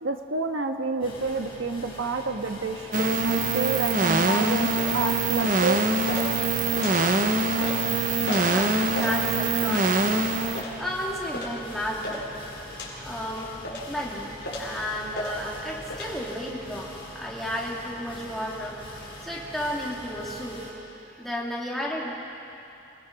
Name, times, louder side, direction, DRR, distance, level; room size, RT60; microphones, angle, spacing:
voice 1, 0.0-5.8, right 3 dB, 90° right, 5 dB, 1.4 m, -29 dB
sound 1, 1.0-20.7, equal, 25° left, 5.6 m, -43 dB
sound 2, 2.9-10.6, right 3 dB, 40° right, 0.9 m, -24 dB
sound 3, 4.7-16.1, left 1 dB, 65° left, 4.3 m, -38 dB
voice 2, 8.3-9.9 10.6-12.2 13.0-13.5 13.9-18.7 19.2-20.6 21.2-22.1, equal, ahead, -4 dB, 2.6 m, -33 dB
26.5 x 18.0 x 6.0 m, 2.8 s
head